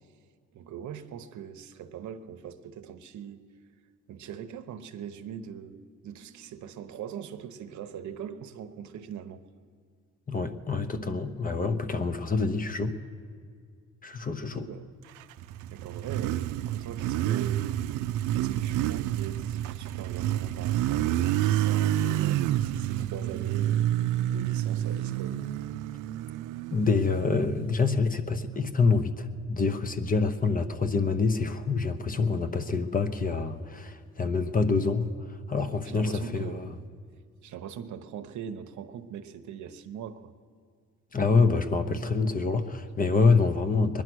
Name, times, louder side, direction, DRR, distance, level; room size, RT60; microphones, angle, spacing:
voice 1, 0.5-3.4 4.1-9.4 11.0-11.1 14.4-14.9 15.7-17.8 18.3-23.8 24.3-25.4 35.9-36.8 37.4-40.3, right 8 dB, 70° right, 9 dB, 0.8 m, -41 dB
voice 2, 10.3-13.0 14.0-14.7 26.7-36.7 41.1-44.0, left 4 dB, 30° left, 9 dB, 0.9 m, -26 dB
Motorcycle, 15.2-27.9, right 12 dB, 90° right, 0.5 m, -29 dB
21.0 x 10.5 x 6.2 m, 2.1 s
cardioid pair, 90°, 30 cm